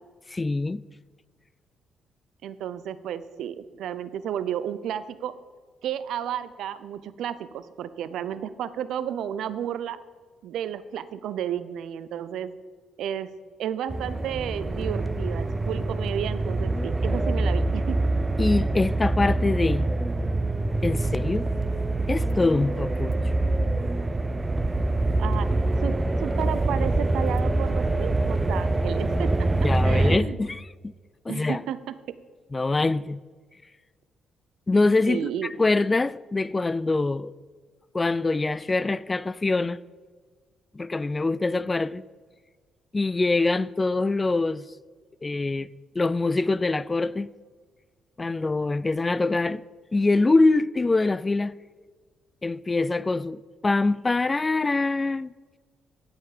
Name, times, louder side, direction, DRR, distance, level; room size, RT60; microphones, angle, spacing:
voice 1, 0.3-0.8 18.4-19.9 20.8-21.5 22.1-23.2 29.6-30.9 31.3-31.6 32.5-33.2 34.7-35.3 35.6-37.3 37.9-39.8 40.7-42.0 42.9-44.7 45.2-45.7 45.9-47.3 48.2-49.6 49.9-51.5 52.4-55.3, left 3 dB, 25° left, 0.3 m, -24 dB
voice 2, 2.4-5.3 5.8-10.0 10.4-12.5 13.0-13.3 13.6-18.0 25.2-25.5 25.8-25.9 26.2-29.5 29.8-30.4 31.3-31.9 35.1-35.5, right 9 dB, 80° right, 0.5 m, -32 dB
sound 1, 13.9-30.2, right 2 dB, 20° right, 0.6 m, -25 dB
16.0 x 5.7 x 5.0 m
cardioid pair, 90°, 0 cm